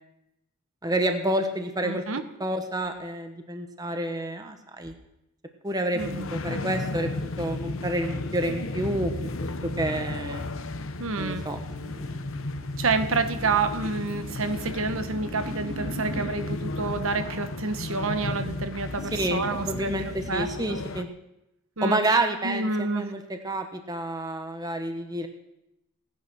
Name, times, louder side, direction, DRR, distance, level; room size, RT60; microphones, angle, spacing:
voice 1, 0.8-2.0 2.4-4.9 5.6-9.1 9.8-10.4 11.2-11.6 11.8-12.2 19.1-21.1 21.8-25.3, right 1 dB, 15° right, 5 dB, 1.2 m, -29 dB
voice 2, 1.8-2.2 5.9-6.3 11.0-11.5 12.8-19.9 20.3-20.8 21.8-22.2 22.4-23.1, right 4 dB, 65° right, 9 dB, 1.1 m, -28 dB
sound 1, 6.0-21.0, left 2 dB, 65° left, 0.9 m, -34 dB
sound 2, 10.4-16.4, right 1 dB, 45° right, 2.5 m, -42 dB
17.5 x 9.8 x 6.3 m, 0.88 s
head